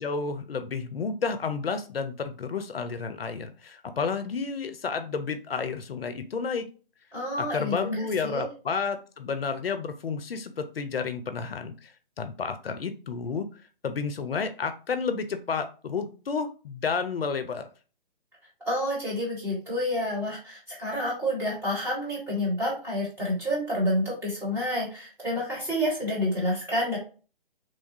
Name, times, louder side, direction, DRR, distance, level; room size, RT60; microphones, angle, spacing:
voice 1, 0.0-6.7 7.5-11.9 12.2-13.5 13.8-17.7, left 5 dB, 80° left, 9 dB, 0.5 m, -31 dB
voice 2, 7.1-8.5 18.6-27.0, equal, 10° right, -6 dB, 1.3 m, -29 dB
3.1 x 2.3 x 2.6 m, 0.36 s
figure-of-eight pair, 130°, 29 cm